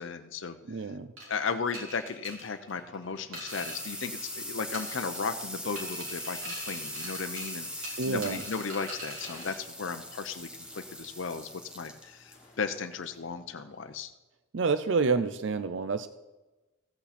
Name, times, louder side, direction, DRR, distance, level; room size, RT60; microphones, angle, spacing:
voice 1, 0.0-0.6 0.8-0.9 1.3-11.5 11.7-14.1, left 5 dB, 65° left, 7 dB, 0.6 m, -35 dB
voice 2, 0.7-1.1 8.0-8.4 14.5-16.1, right 4 dB, 60° right, 12 dB, 0.5 m, -28 dB
sound 1, 1.2-4.4 4.7-5.4 5.8-9.6, right 1 dB, 80° right, 4.6 m, -43 dB
sound 2, 2.8-14.0, left 1 dB, 5° right, 1.1 m, -41 dB
sound 3, 9.2-10.2 10.7-11.7 12.3-13.3, left 2 dB, 35° left, 1.9 m, -57 dB
15.0 x 8.3 x 4.2 m, 1.1 s
head